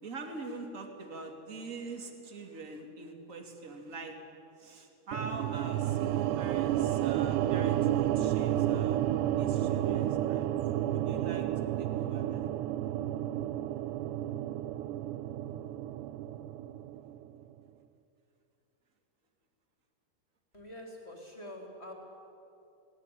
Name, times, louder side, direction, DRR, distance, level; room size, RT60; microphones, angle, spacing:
voice 1, 0.0-4.1 4.6-9.0 9.4-10.5 10.9-12.5, right 3 dB, 25° right, 3 dB, 1.8 m, -43 dB
sound 1, 5.1-17.4, right 12 dB, 85° right, 2.8 m, -31 dB
voice 2, 20.5-21.9, left 1 dB, 15° left, 0 dB, 3.6 m, -45 dB
21.0 x 19.5 x 10.0 m, 2.9 s
omnidirectional pair, 4.9 m